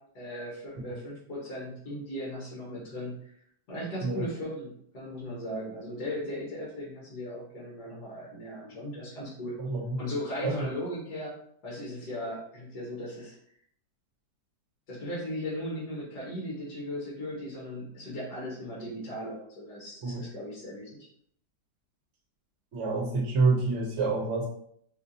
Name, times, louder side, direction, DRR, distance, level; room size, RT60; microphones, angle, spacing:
voice 1, 0.0-3.3 3.7-9.5 10.0-11.3 11.6-13.4 14.9-21.0, equal, 70° left, -6 dB, 2.1 m, -37 dB
voice 2, 9.6-10.0 10.4-10.7 20.0-20.2 22.7-24.5, right 3 dB, 50° right, -2 dB, 1.3 m, -27 dB
4.8 x 2.5 x 2.8 m, 0.66 s
omnidirectional pair, 1.8 m